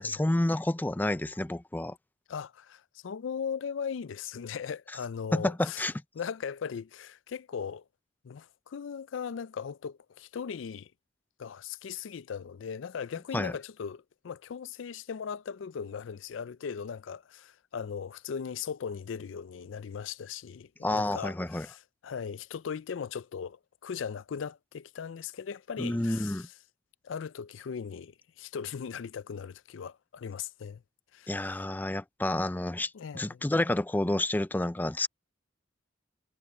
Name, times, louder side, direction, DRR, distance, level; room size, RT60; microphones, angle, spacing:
voice 1, 0.0-2.0 5.3-5.9 13.3-13.5 20.8-21.7 25.8-26.5 31.3-35.1, left 1 dB, 10° left, 0.4 m, -29 dB
voice 2, 2.3-5.9 6.1-7.8 8.2-10.9 11.4-26.5 27.0-30.8 31.1-31.3 32.9-33.4, left 7 dB, 75° left, 0.4 m, -38 dB
head